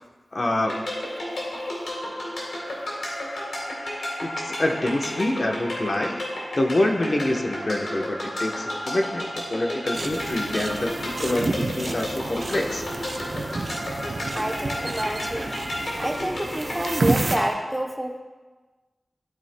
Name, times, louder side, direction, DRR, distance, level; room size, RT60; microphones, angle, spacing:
voice 1, 0.3-0.9 4.2-6.2 6.6-12.8, left 1 dB, 45° left, 2 dB, 0.9 m, -26 dB
sound 1, 0.6-17.5, left 1 dB, 90° left, 3.1 m, -32 dB
sound 2, 9.9-17.4, right 3 dB, 55° right, 0.7 m, -30 dB
voice 2, 14.3-15.5 16.0-18.2, right 1 dB, 10° right, 3 dB, 0.7 m, -28 dB
14.5 x 9.4 x 2.2 m, 1.3 s
wide cardioid pair, 85°, 0 cm